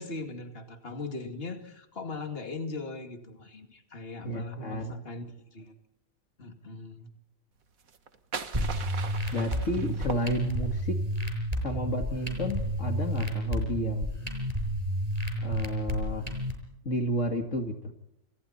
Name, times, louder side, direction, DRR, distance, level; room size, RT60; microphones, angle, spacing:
voice 1, 0.0-5.3 5.5-5.7 6.4-7.1, left 3 dB, 45° left, 5 dB, 2.7 m, -39 dB
voice 2, 4.2-4.9 9.3-11.0 11.6-14.1 15.4-16.3 16.9-17.7, equal, 65° left, 4 dB, 2.4 m, -31 dB
sound 1, 7.8-10.8, right 5 dB, 85° right, 1.9 m, -40 dB
sound 2, 8.5-16.5, equal, 25° right, 6.3 m, -31 dB
28.0 x 27.0 x 4.3 m, 0.85 s
omnidirectional pair, 1.4 m